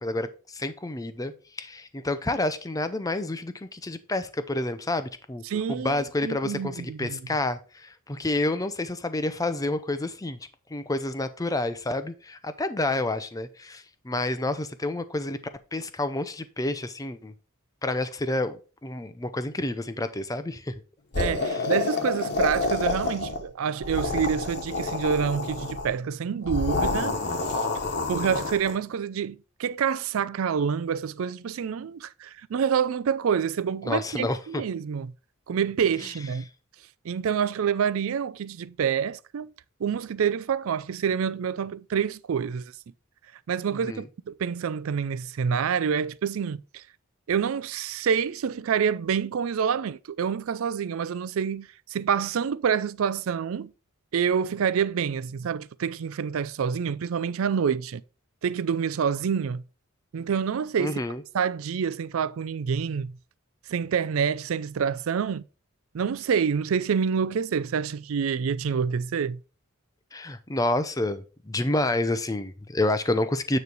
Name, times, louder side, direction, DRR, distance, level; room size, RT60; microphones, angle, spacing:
voice 1, 0.0-5.4 5.7-10.4 10.7-15.4 15.7-17.3 17.8-18.6 18.8-20.8 21.5-21.7 33.8-34.6 43.7-44.0 60.8-61.2 70.1-73.6, left 2 dB, 15° left, 0.6 m, -29 dB
voice 2, 5.5-7.2 21.2-27.2 27.5-27.6 28.1-35.1 35.5-36.5 37.0-39.5 39.8-42.7 43.5-46.8 47.3-53.7 54.1-58.0 58.4-59.6 60.1-61.0 61.3-63.2 63.7-65.4 65.9-69.4, right 7 dB, 70° right, 0.4 m, -27 dB
sound 1, 21.1-23.4 23.8-25.9 26.4-28.7, left 3 dB, 50° left, 1.2 m, -28 dB
9.4 x 3.2 x 5.2 m
head